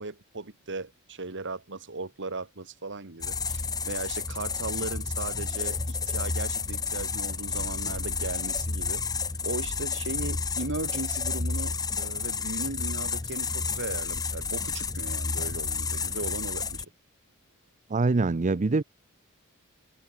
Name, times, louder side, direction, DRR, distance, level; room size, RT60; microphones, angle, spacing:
voice 1, 0.0-9.0 9.4-16.9, right 3 dB, 55° right, 2.1 m, -37 dB
sound 1, 3.2-16.8, left 5 dB, 15° left, 0.7 m, -31 dB
voice 2, 17.9-18.8, right 3 dB, 35° right, 0.6 m, -24 dB
head